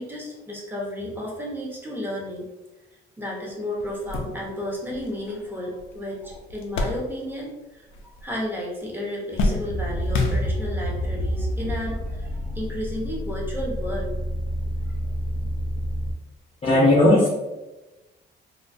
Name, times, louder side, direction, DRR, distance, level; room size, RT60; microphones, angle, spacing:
voice 1, 0.0-2.4 3.2-7.9 8.2-14.2, left 1 dB, 10° right, -3 dB, 0.8 m, -32 dB
sound 1, 3.3-3.4 3.8-7.6 7.8-8.6 8.9-10.9 11.7-11.8 13.1-13.2, left 3 dB, 80° left, 0.4 m, -30 dB
sound 2, 9.7-16.1, equal, 45° right, 0.5 m, -28 dB
voice 2, 16.6-17.3, left 1 dB, 30° left, -4 dB, 0.6 m, -16 dB
2.6 x 2.2 x 2.5 m, 1.1 s
cardioid pair, 90°, 20 cm